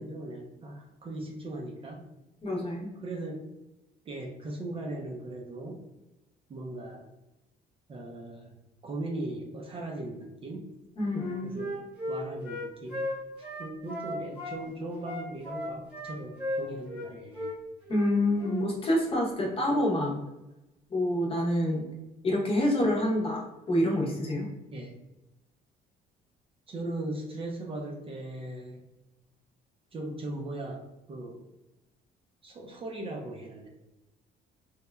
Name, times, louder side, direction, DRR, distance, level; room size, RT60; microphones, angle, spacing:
voice 1, 0.0-2.0 3.0-3.4 4.1-5.8 6.5-7.1 7.9-8.5 8.8-10.7 11.4-13.0 13.4-17.5 24.7-24.9 26.7-28.8 29.9-30.8 31.1-31.4 32.4-33.7, right 2 dB, 35° right, 0 dB, 0.5 m, -38 dB
voice 2, 2.4-2.9 11.0-11.6 17.9-20.2 20.9-21.8 22.2-24.5, left 1 dB, 35° left, -2 dB, 0.8 m, -27 dB
Wind instrument woodwind instrument, 11.1-14.6 15.0-17.1 17.3-17.5 17.9-18.1 18.4-18.6, left 1 dB, 10° right, 1.0 m, -35 dB
2.9 x 2.3 x 2.2 m, 0.98 s
cardioid pair, 110°, 17 cm